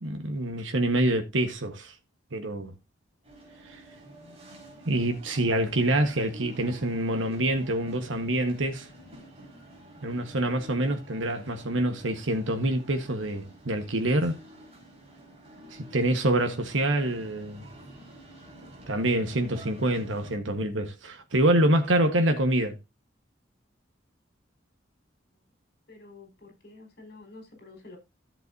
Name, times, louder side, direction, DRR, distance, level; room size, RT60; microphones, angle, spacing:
voice 1, 0.0-1.9 2.3-2.7 3.7-3.8 4.9-8.9 10.0-14.4 15.7-17.7 18.9-22.8, right 1 dB, 90° right, 1.3 m, -26 dB
sound 1, 3.2-20.4, right 1 dB, 30° right, 4.8 m, -49 dB
voice 2, 25.9-28.0, left 3 dB, 55° left, 4.9 m, -49 dB
13.5 x 7.6 x 2.7 m
head